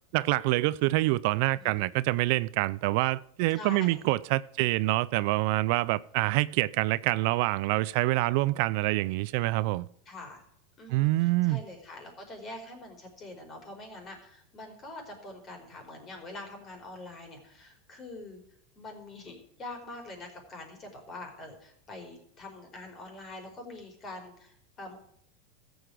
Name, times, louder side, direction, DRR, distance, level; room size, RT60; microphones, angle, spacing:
voice 1, 0.1-9.9 10.9-11.6, right 19 dB, 60° right, 0.4 m, -26 dB
voice 2, 1.5-1.8 3.5-4.0 10.1-10.4 10.8-18.4 18.7-25.0, left 2 dB, 30° left, 4.7 m, -44 dB
14.0 x 8.0 x 4.9 m
supercardioid pair, 125°, 0 cm